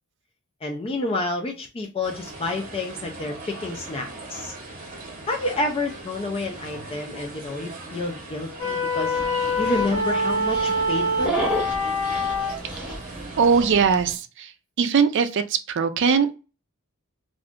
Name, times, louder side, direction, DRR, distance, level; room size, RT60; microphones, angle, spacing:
voice 1, 0.6-4.5 4.9-9.2 9.6-11.5, left 2 dB, 25° left, 0.4 m, -29 dB
sound 1, 2.0-13.6, right 2 dB, 40° right, 0.8 m, -39 dB
sound 2, 8.6-12.6, left 1 dB, 75° left, 0.8 m, -25 dB
Dog, 9.1-14.1, right 2 dB, 5° right, 0.8 m, -33 dB
voice 2, 13.4-14.5 14.8-16.4, right 6 dB, 55° right, 0.4 m, -20 dB
2.5 x 2.3 x 3.5 m
head